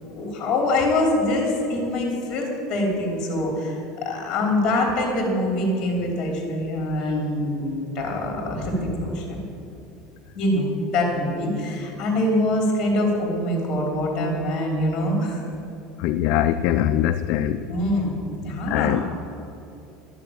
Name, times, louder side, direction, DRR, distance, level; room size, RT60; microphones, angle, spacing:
voice 1, 0.1-9.4 10.3-15.4 17.6-18.2 18.4-18.9, left 1 dB, 25° left, 1 dB, 2.8 m, -24 dB
voice 2, 16.0-17.6 18.7-19.1, left 11 dB, 45° left, 8 dB, 0.3 m, -22 dB
12.0 x 6.9 x 8.6 m, 2.8 s
cardioid pair, 180°, 2 cm